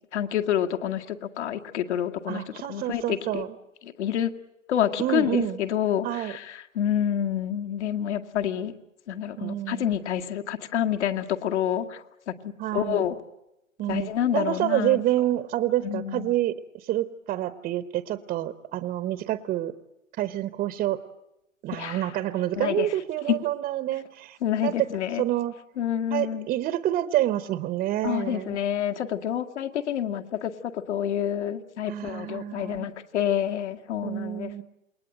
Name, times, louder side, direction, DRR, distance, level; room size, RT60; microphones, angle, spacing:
voice 1, 0.1-3.4 3.8-4.3 4.7-8.7 9.1-13.2 13.9-15.0 15.8-16.3 21.7-22.2 22.6-22.9 23.3-23.4 24.4-25.2 25.8-26.5 28.0-34.6, left 10 dB, 60° left, 6 dB, 2.2 m, -28 dB
voice 2, 2.3-3.5 5.0-5.6 6.0-6.3 9.4-9.9 12.6-13.0 13.8-19.7 20.2-21.0 21.6-24.9 25.2-25.5 26.1-28.6 31.9-32.9 34.0-34.6, right 14 dB, 20° right, 13 dB, 0.9 m, -28 dB
28.5 x 21.0 x 9.2 m, 0.90 s
hypercardioid pair, 135°, 40 cm